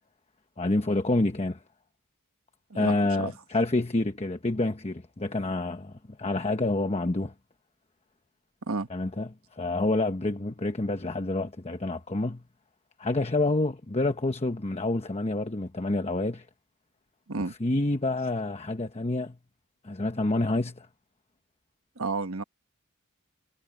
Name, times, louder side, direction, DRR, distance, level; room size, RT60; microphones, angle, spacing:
voice 1, 0.6-1.6 2.7-7.3 8.9-12.4 13.0-16.5 17.6-19.4 19.8-20.9, left 2 dB, 30° left, 1.0 m, -28 dB
voice 2, 2.7-3.3 8.7-8.9 17.3-17.5 22.0-22.4, right 3 dB, 70° right, 1.4 m, -31 dB
head